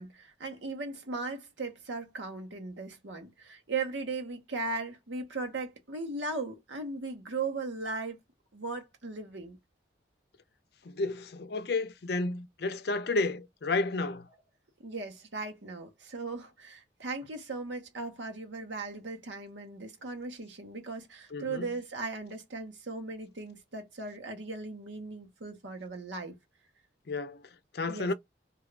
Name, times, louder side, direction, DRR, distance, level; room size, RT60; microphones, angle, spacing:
voice 1, 0.0-8.2 8.5-9.6 14.8-26.4 27.9-28.1, right 3 dB, 80° right, 1.1 m, -38 dB
voice 2, 10.8-14.3 21.3-21.7 27.1-27.4 27.7-28.1, left 3 dB, 60° left, 0.5 m, -31 dB
2.6 x 2.5 x 3.2 m
head